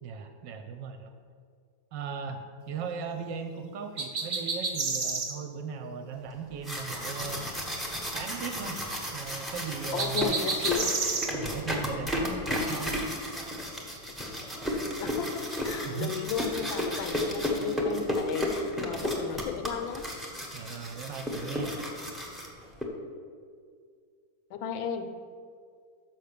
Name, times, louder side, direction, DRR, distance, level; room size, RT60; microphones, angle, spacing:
voice 1, 0.0-1.1 1.9-7.5 8.1-8.8 9.1-10.4 11.3-12.9 15.9-16.2 20.5-21.8, right 6 dB, 70° right, 6 dB, 1.2 m, -38 dB
sound 1, 4.0-5.3 10.0-11.3, right 4 dB, 45° right, 0.9 m, -30 dB
sound 2, 6.4-22.8, left 1 dB, ahead, 0.5 m, -33 dB
voice 2, 9.9-11.1 15.0-20.1 24.5-25.2, left 7 dB, 80° left, 8 dB, 1.4 m, -34 dB
6.5 x 5.8 x 6.7 m, 2.1 s
omnidirectional pair, 2.2 m